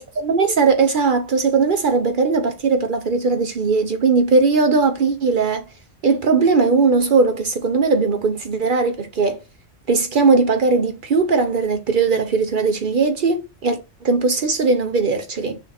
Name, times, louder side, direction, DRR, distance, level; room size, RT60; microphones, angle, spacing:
voice 1, 0.0-5.6 6.0-9.4 9.9-15.6, right 4 dB, 55° right, 0.7 m, -19 dB
6.2 x 2.5 x 3.3 m
omnidirectional pair, 1.3 m